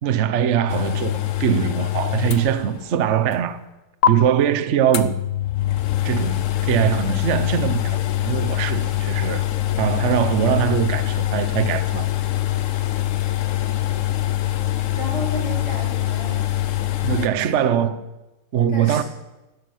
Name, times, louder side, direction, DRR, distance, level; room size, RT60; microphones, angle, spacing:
voice 1, 0.0-3.6 4.0-5.2 6.0-9.4 9.8-12.1 17.0-18.0 18.5-19.0, right 9 dB, 60° right, 0.7 m, -22 dB
sound 1, 0.7-3.0 3.3-3.4 4.0-4.1 4.9-17.3, left 13 dB, 85° left, 0.6 m, -23 dB
voice 2, 14.9-16.4 17.2-17.5 17.8-17.9 18.7-19.0, equal, 70° left, 6.2 m, -33 dB
16.5 x 12.0 x 6.4 m
omnidirectional pair, 2.3 m